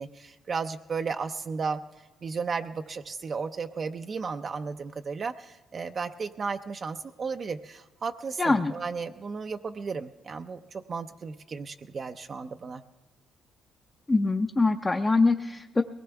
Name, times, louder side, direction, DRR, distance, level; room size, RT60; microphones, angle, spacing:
voice 1, 0.0-1.8 2.2-12.8, right 5 dB, 45° right, 6 dB, 0.5 m, -34 dB
voice 2, 8.4-8.7 14.1-15.8, left 3 dB, 20° left, 4 dB, 0.6 m, -23 dB
22.0 x 18.5 x 3.5 m, 1.2 s
cardioid pair, 90°, 0 cm